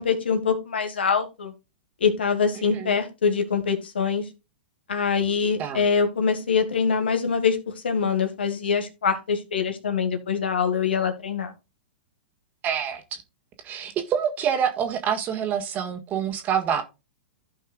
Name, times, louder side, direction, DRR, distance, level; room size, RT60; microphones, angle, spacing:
voice 1, 0.0-1.5 2.0-4.2 4.9-7.6 7.8-11.5, left 6 dB, 70° left, 1.8 m, -24 dB
voice 2, 12.6-13.2 13.6-16.8, right 8 dB, 30° right, 1.6 m, -26 dB
15.5 x 5.4 x 2.4 m
figure-of-eight pair, 105°, 6 cm